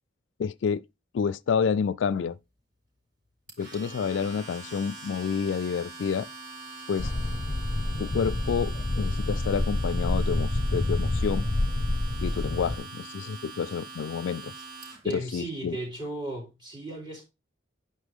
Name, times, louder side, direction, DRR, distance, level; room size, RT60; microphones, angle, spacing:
voice 1, 0.4-0.8 1.1-2.4 3.6-6.3 6.9-7.1 8.0-11.5 12.2-14.5 15.1-15.8, left 6 dB, 75° left, 0.3 m, -29 dB
Domestic sounds home sounds, 3.5-15.1, right 3 dB, 45° right, 5.1 m, -43 dB
sound 1, 7.0-12.8, left 1 dB, 35° left, 0.6 m, -28 dB
voice 2, 15.0-17.2, right 2 dB, 25° right, 3.7 m, -35 dB
9.9 x 5.3 x 3.6 m
head